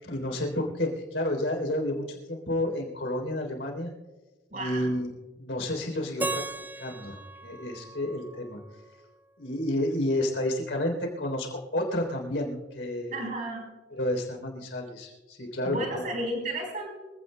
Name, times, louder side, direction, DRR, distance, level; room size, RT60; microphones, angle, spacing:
voice 1, 0.0-3.9 4.5-5.1 5.4-6.4 6.8-8.6 9.4-13.2 13.9-16.0, left 1 dB, 90° left, 2 dB, 3.5 m, -30 dB
voice 2, 4.5-4.8 13.1-13.7 15.6-16.9, right 1 dB, 45° right, 1 dB, 4.4 m, -32 dB
Keyboard (musical), 6.2-9.2, right 3 dB, 10° right, 0.5 m, -37 dB
25.5 x 16.0 x 2.2 m, 1.2 s
head